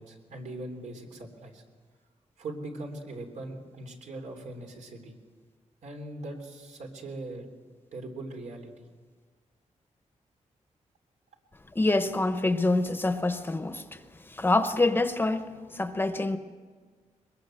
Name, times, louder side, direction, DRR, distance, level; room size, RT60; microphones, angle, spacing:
voice 1, 0.0-1.6 2.4-5.2 5.8-7.5 7.9-8.9, right 2 dB, 80° right, 3.5 m, -40 dB
voice 2, 11.7-14.0 14.3-16.4, left 2 dB, 15° left, 0.9 m, -26 dB
22.5 x 21.0 x 7.8 m
wide cardioid pair, 175°, 12 cm